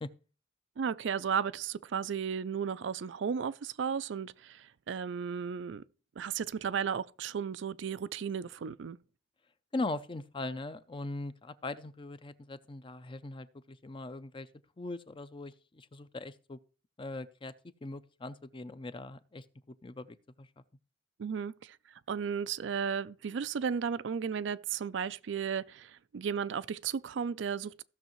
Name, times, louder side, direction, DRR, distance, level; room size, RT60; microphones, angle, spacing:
voice 1, 0.8-5.8 6.2-9.0 21.2-21.8 22.1-27.8, right 7 dB, 75° right, 0.4 m, -34 dB
voice 2, 9.7-14.5 14.8-16.6 17.0-17.5 17.8-19.4 19.8-20.5, left 2 dB, 30° left, 0.5 m, -40 dB
15.5 x 6.5 x 3.0 m
head